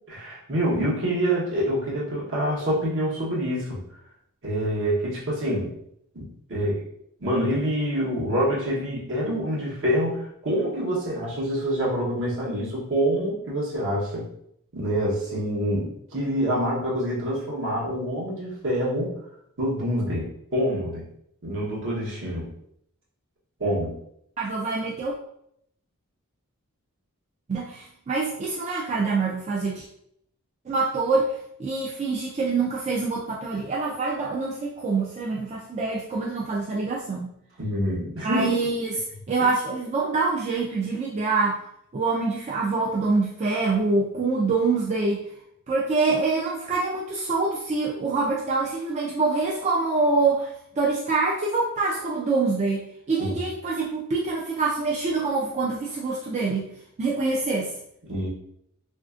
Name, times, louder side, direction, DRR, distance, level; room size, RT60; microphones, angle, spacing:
voice 1, 0.0-3.8 4.4-5.7 6.1-6.2 6.5-6.8 7.2-14.3 14.7-19.1 19.6-21.0 21.4-22.5 23.6-23.9 37.6-38.5 53.2-53.3 58.1-58.3, equal, 60° right, -5 dB, 1.0 m, -26 dB
voice 2, 24.4-25.1 27.5-29.8 30.7-37.3 38.2-38.9 39.3-41.6 41.9-45.2 45.7-50.5 50.8-56.7 57.0-57.7, right 3 dB, 30° right, -4 dB, 0.3 m, -25 dB
3.2 x 2.5 x 2.4 m, 0.73 s
head